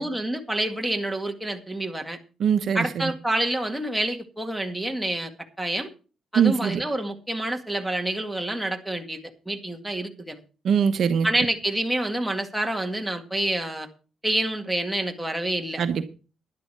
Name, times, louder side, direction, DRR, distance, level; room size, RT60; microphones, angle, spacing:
voice 1, 0.0-2.2 2.7-5.3 5.6-5.9 6.3-9.2 9.5-10.4 11.2-13.9 14.2-15.8, right 1 dB, 5° right, 2.0 m, -27 dB
voice 2, 2.4-3.1 6.3-6.8 10.6-11.3 15.8-16.1, right 7 dB, 60° right, 1.0 m, -22 dB
11.5 x 11.0 x 4.6 m
cardioid pair, 90°, 0 cm